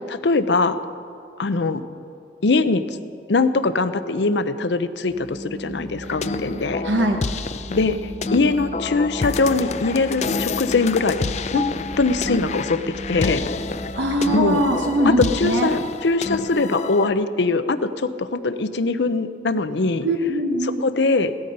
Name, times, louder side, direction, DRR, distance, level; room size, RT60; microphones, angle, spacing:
voice 1, 0.1-0.8 1.4-1.8 2.4-2.8 3.3-6.8 7.7-8.0 8.3-11.6 12.0-12.8 13.1-13.4 14.3-14.6 15.2-20.1 20.6-21.3, left 3 dB, 75° left, 12 dB, 0.7 m, -21 dB
Organ, 5.0-15.3, right 1 dB, 15° right, 1.0 m, -36 dB
sound 1, 6.0-17.1, left 4 dB, 40° left, 0.4 m, -29 dB
voice 2, 6.8-7.2 11.5-11.6 14.0-15.7 20.0-20.8, right 1 dB, 90° right, 3 dB, 1.1 m, -21 dB
17.0 x 12.5 x 5.4 m, 2.4 s
head